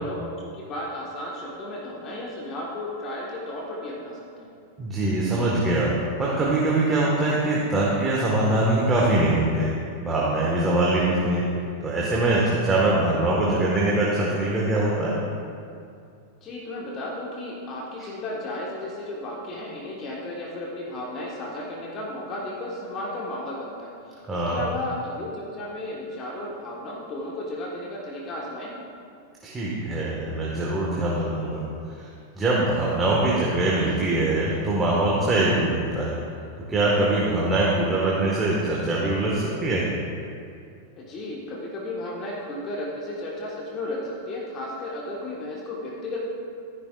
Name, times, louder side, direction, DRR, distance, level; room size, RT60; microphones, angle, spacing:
voice 1, 0.0-4.5 16.4-28.7 41.0-46.2, left 1 dB, 30° left, -3 dB, 1.7 m, -34 dB
voice 2, 4.8-5.9 6.2-9.7 10.0-11.4 11.8-15.2 24.3-24.6 29.4-31.6 32.4-36.1 36.7-39.8, right 2 dB, 15° right, -5 dB, 1.8 m, -23 dB
13.5 x 10.5 x 2.6 m, 2.4 s
figure-of-eight pair, 90°, 0 cm